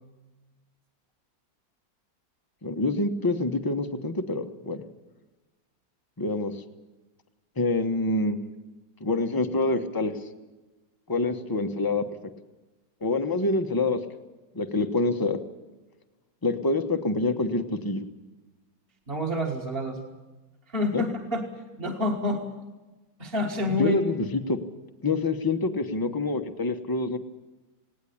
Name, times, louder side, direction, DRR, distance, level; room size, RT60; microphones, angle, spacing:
voice 1, 2.6-4.8 6.2-6.5 7.6-8.4 9.0-10.1 11.1-12.0 13.0-14.0 14.5-15.4 16.4-18.0 20.9-21.0 23.8-24.6 25.0-27.2, left 2 dB, 15° left, 7 dB, 0.8 m, -26 dB
voice 2, 19.1-20.0 20.7-21.5 21.8-22.5 23.2-24.0, left 1 dB, 30° right, -2 dB, 1.9 m, -28 dB
19.5 x 18.0 x 8.6 m, 1.2 s
omnidirectional pair, 2.0 m